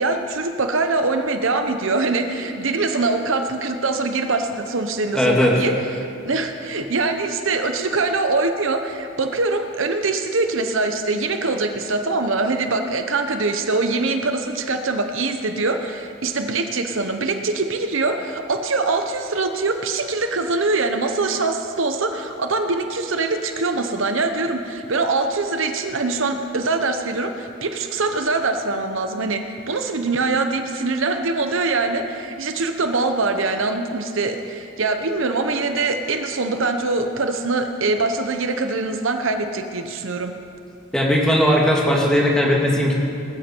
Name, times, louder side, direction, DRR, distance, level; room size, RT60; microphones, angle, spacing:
voice 1, 0.0-40.3, right 3 dB, 65° right, 6 dB, 0.8 m, -23 dB
voice 2, 5.1-5.6 40.9-42.9, equal, 5° left, -3 dB, 2.2 m, -18 dB
20.5 x 13.0 x 4.5 m, 2.5 s
head